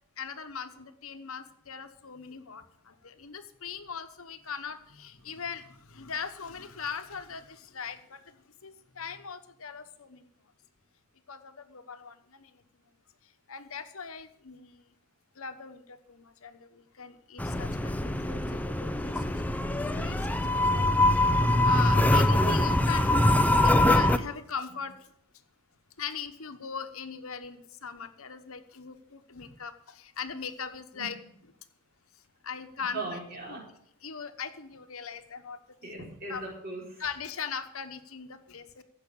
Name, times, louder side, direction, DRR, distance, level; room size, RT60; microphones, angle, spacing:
voice 1, 0.2-8.2 8.6-10.3 11.3-12.5 13.5-14.8 15.4-19.6 19.9-20.8 21.1-21.3 21.6-23.1 23.6-24.9 26.0-31.2 32.4-33.2 33.5-33.6 34.0-35.6 36.3-36.4 37.0-38.8, left 6 dB, 70° left, 9 dB, 1.1 m, -40 dB
sound 1, 17.4-24.2, left 1 dB, 5° left, 0.5 m, -23 dB
voice 2, 32.9-33.6 35.8-37.0, right 3 dB, 40° right, -1 dB, 4.3 m, -38 dB
15.0 x 5.9 x 8.7 m, 0.69 s
head